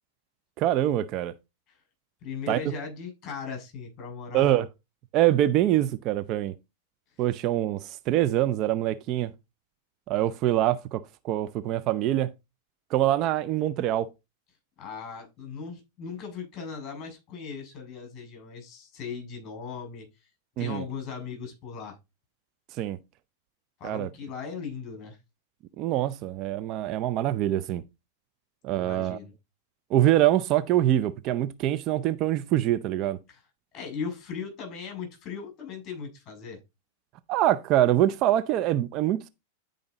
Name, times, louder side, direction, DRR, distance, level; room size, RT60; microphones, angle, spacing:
voice 1, 0.6-1.3 2.5-2.6 4.3-4.7 5.1-6.5 7.2-9.3 10.1-12.3 12.9-14.1 20.6-20.8 22.8-23.0 23.8-24.1 25.8-27.8 28.6-29.2 29.9-33.2 37.3-39.3, right 13 dB, 45° right, 0.6 m, -24 dB
voice 2, 2.2-4.5 14.8-20.1 20.6-22.0 23.8-25.2 28.8-29.3 33.3-33.4 33.7-36.6, left 6 dB, 35° left, 6.4 m, -38 dB
10.5 x 5.2 x 4.0 m
hypercardioid pair, 115°, 0 cm